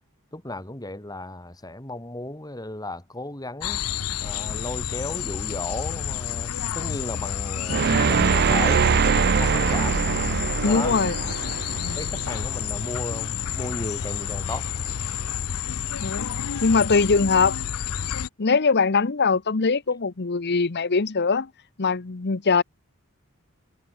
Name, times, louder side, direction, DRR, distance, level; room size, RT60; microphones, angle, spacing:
voice 1, 0.3-3.8 4.2-8.9 9.3-10.1 10.6-11.0 11.9-14.7, left 2 dB, 15° left, 3.4 m, -35 dB
sound 1, 3.6-18.3, left 8 dB, 75° left, 0.6 m, -30 dB
sound 2, 7.7-12.8, right 6 dB, 45° right, 0.4 m, -23 dB
sound 3, 8.0-15.3, right 2 dB, 15° right, 6.2 m, -50 dB
voice 2, 10.6-11.1 16.0-16.4 16.6-17.6 18.4-21.5 21.8-22.6, left 4 dB, 50° left, 0.8 m, -21 dB
head